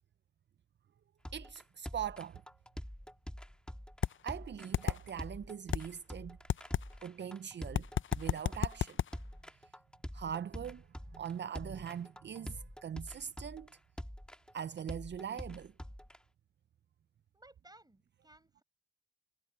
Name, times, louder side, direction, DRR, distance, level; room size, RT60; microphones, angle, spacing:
sound 1, 1.2-16.2, equal, 5° left, 1.5 m, -46 dB
voice 1, 1.3-2.4 4.2-6.4 7.0-7.9 8.2-9.0 10.1-10.9 11.1-13.7 14.5-15.7, right 8 dB, 65° right, 0.5 m, -41 dB
sound 2, 4.0-4.1 4.7-5.0 5.7-5.8 6.5-6.8 7.8-9.1, left 10 dB, 80° left, 0.5 m, -30 dB
voice 2, 17.3-18.6, right 1 dB, 20° right, 6.7 m, -60 dB
cardioid pair, 60°, 20 cm